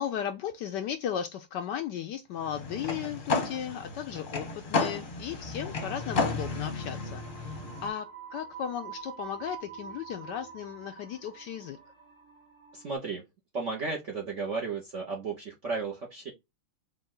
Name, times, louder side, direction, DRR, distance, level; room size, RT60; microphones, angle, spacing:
voice 1, 0.0-8.1 8.3-11.8, left 9 dB, 75° left, 1.0 m, -36 dB
sound 1, 2.4-7.9, left 3 dB, 35° left, 0.8 m, -32 dB
sound 2, 5.7-13.0, right 7 dB, 85° right, 2.8 m, -47 dB
voice 2, 12.7-13.2 13.5-16.3, right 4 dB, 60° right, 0.8 m, -34 dB
5.2 x 2.4 x 3.6 m
omnidirectional pair, 2.3 m